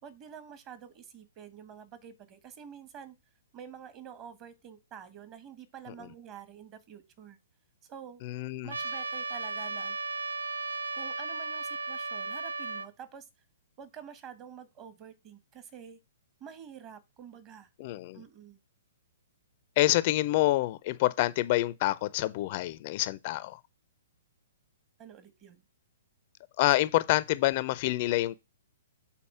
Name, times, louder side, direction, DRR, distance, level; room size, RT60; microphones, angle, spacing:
voice 1, 0.0-3.1 3.5-7.4 7.8-8.2 8.6-10.0 10.9-13.3 13.8-16.0 16.4-17.7 18.1-18.6 25.0-25.6, right 8 dB, 30° right, 1.5 m, -48 dB
voice 2, 8.2-8.7 17.8-18.2 19.8-23.6 26.6-28.4, left 17 dB, 40° left, 0.5 m, -27 dB
Trumpet, 8.7-12.9, right 3 dB, 80° right, 0.6 m, -35 dB
7.4 x 4.1 x 5.7 m
figure-of-eight pair, 115°, 0 cm